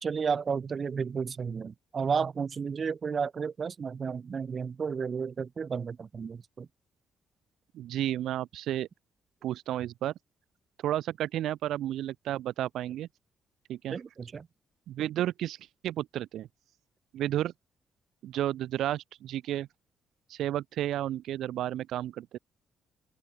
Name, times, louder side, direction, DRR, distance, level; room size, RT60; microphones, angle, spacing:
voice 1, 0.0-6.7 13.9-14.5, right 6 dB, 40° right, 1.4 m, -32 dB
voice 2, 7.7-8.9 9.4-10.1 10.8-13.1 13.7-14.0 14.9-15.6 15.8-16.5 17.1-17.5 18.2-19.7 20.3-22.4, right 12 dB, 80° right, 1.2 m, -32 dB
open air
cardioid pair, 90°, 0 cm